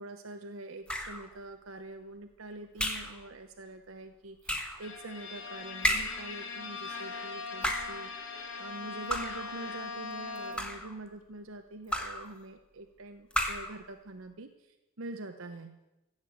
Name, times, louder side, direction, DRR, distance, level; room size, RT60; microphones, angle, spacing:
voice 1, 0.0-8.1 8.6-14.5 15.0-15.7, right 2 dB, 75° right, 6 dB, 0.9 m, -44 dB
sound 1, 0.9-1.3 2.8-3.2 4.5-4.8 5.8-6.3 7.5-8.0 9.1-9.5 10.4-11.0 11.9-12.3 13.3-13.8, equal, 5° left, 1.3 m, -32 dB
Bowed string instrument, 4.8-10.9, left 4 dB, 65° left, 2.2 m, -41 dB
15.0 x 8.3 x 8.2 m, 0.98 s
head